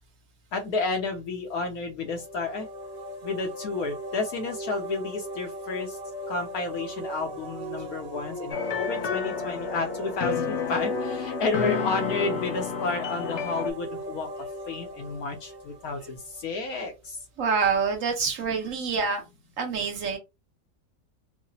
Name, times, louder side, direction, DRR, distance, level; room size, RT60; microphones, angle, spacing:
voice 1, 0.5-2.7 3.2-6.0 6.3-14.3 14.7-17.2, left 3 dB, 65° left, 5 dB, 1.0 m, -31 dB
sound 1, 2.1-16.8, equal, 90° right, 1.6 m, -38 dB
sound 2, 8.5-13.7, left 7 dB, 90° left, 0.6 m, -30 dB
voice 2, 17.4-19.2 19.6-20.2, right 5 dB, 55° right, 3 dB, 1.2 m, -26 dB
4.8 x 2.0 x 2.6 m, 0.24 s
omnidirectional pair, 1.9 m